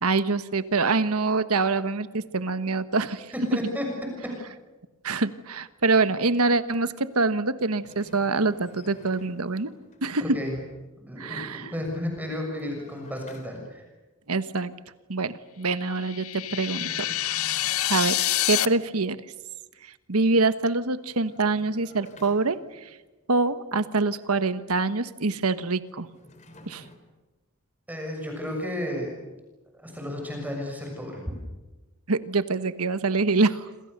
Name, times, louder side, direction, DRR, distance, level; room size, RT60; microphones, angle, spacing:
voice 1, 0.0-3.3 5.0-9.7 10.0-10.3 11.2-11.7 14.3-14.7 15.1-17.1 17.9-19.2 20.1-22.9 23.3-26.1 26.7-26.8 32.1-33.6, right 3 dB, 85° right, 12 dB, 1.3 m, -25 dB
voice 2, 3.5-3.9 10.2-10.5 11.0-13.8 27.9-29.2 29.8-31.2, left 1 dB, 10° right, 1 dB, 6.7 m, -33 dB
sound 1, 7.8-10.1 11.9-13.9 16.4-18.4 20.8-23.0 25.9-27.0, left 1 dB, 35° left, 3.6 m, -51 dB
sound 2, 15.9-18.7, left 14 dB, 75° left, 0.8 m, -27 dB
27.5 x 27.0 x 6.8 m, 1.1 s
head